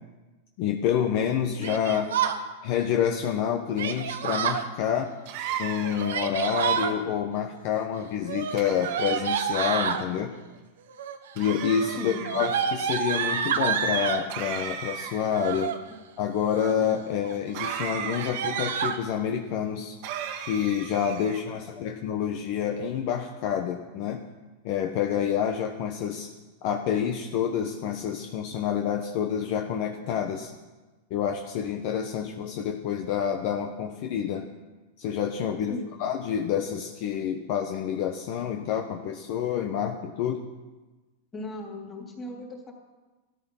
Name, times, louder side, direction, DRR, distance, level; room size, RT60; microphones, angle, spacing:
voice 1, 0.6-2.1 2.6-5.1 5.6-10.3 11.4-15.7 16.2-20.0 20.4-24.2 24.6-26.3 26.6-30.5 31.1-34.5 35.0-40.5, left 8 dB, 50° left, 3 dB, 1.1 m, -28 dB
Yell, 1.6-2.4 3.8-4.7 5.8-6.9 8.2-10.0 10.9-11.3 11.6-14.3 15.2-15.8 16.3-16.9 17.2-17.4 17.6-17.8 18.1-19.0, right 7 dB, 90° right, 1.3 m, -29 dB
sound 1, 5.3-6.2 8.6-9.5 11.4-12.3 14.3-15.4 17.5-18.7 20.0-21.4, right 8 dB, 55° right, 1.7 m, -36 dB
voice 2, 12.0-12.3 35.7-36.0 41.3-42.7, left 2 dB, 15° left, 0 dB, 3.2 m, -37 dB
16.5 x 13.5 x 5.6 m, 1.2 s
supercardioid pair, 145°, 0 cm